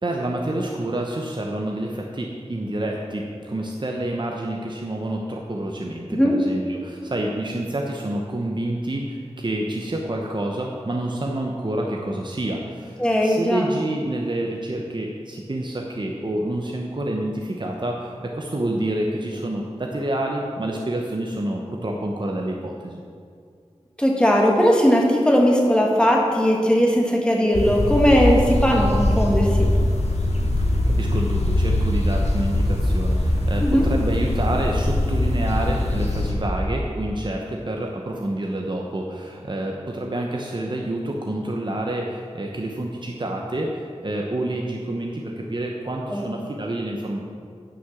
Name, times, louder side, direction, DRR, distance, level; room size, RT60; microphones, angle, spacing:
voice 1, 0.0-23.0 30.6-47.2, right 1 dB, 45° right, 0 dB, 0.9 m, -28 dB
voice 2, 13.0-13.7 24.0-29.7 33.6-33.9 46.1-46.2, equal, 10° left, -1 dB, 1.8 m, -18 dB
sound 1, 27.5-36.3, left 1 dB, 75° left, 1.6 m, -22 dB
9.8 x 6.0 x 7.2 m, 2.3 s
wide cardioid pair, 65°, 11 cm